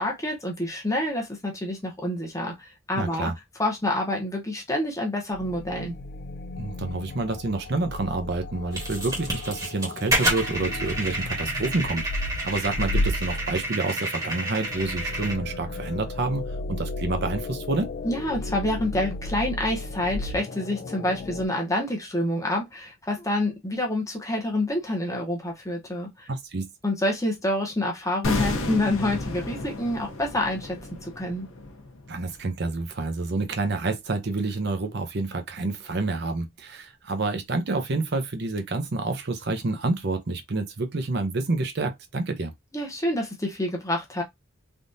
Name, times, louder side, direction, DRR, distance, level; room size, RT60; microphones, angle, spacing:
voice 1, 0.0-3.3 3.6-6.0 18.0-26.3 26.8-31.5 42.7-44.2, left 1 dB, 15° left, 0.9 m, -27 dB
voice 2, 2.9-3.3 6.6-17.9 26.3-26.7 32.1-42.5, right 3 dB, 50° right, 0.6 m, -28 dB
sound 1, 5.3-21.5, left 2 dB, 45° left, 0.4 m, -34 dB
sound 2, 8.7-15.3, right 1 dB, 15° right, 1.1 m, -29 dB
sound 3, 28.2-33.3 33.5-33.7, left 2 dB, 70° left, 0.8 m, -33 dB
3.5 x 2.5 x 2.6 m
head